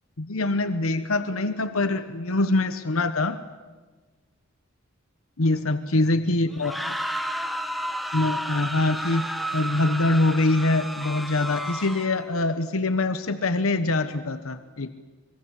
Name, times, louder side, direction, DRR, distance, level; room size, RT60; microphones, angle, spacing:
voice 1, 0.2-3.4 5.4-7.0 8.1-9.3 9.5-14.9, left 2 dB, 80° left, 10 dB, 1.1 m, -24 dB
sound 1, 6.5-12.3, equal, ahead, 1.1 m, -32 dB
26.5 x 21.0 x 8.2 m, 1.4 s
head